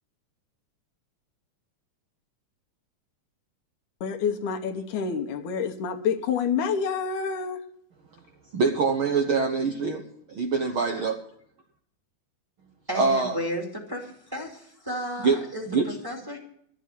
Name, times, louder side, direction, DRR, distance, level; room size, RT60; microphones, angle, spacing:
voice 1, 4.0-7.6, left 6 dB, 75° left, 4 dB, 2.5 m, -28 dB
voice 2, 8.5-10.0 10.3-11.2 12.9-13.4 15.2-15.4 15.7-15.9, right 4 dB, 60° right, 3 dB, 1.4 m, -24 dB
voice 3, 12.9-15.7 16.0-16.4, equal, 10° right, 0 dB, 2.1 m, -33 dB
13.0 x 7.4 x 9.4 m, 0.67 s
omnidirectional pair, 3.6 m